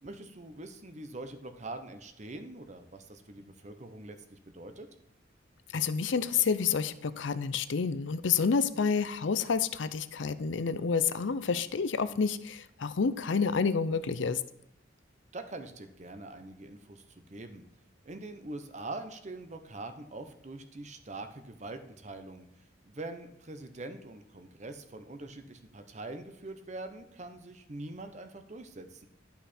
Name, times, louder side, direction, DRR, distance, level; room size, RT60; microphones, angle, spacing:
voice 1, 0.0-4.9 15.3-17.6 18.0-22.5 22.8-29.1, right 2 dB, 40° right, 8 dB, 0.8 m, -43 dB
voice 2, 5.7-14.4, left 5 dB, 80° left, 14 dB, 0.5 m, -29 dB
12.0 x 5.7 x 4.3 m, 0.82 s
head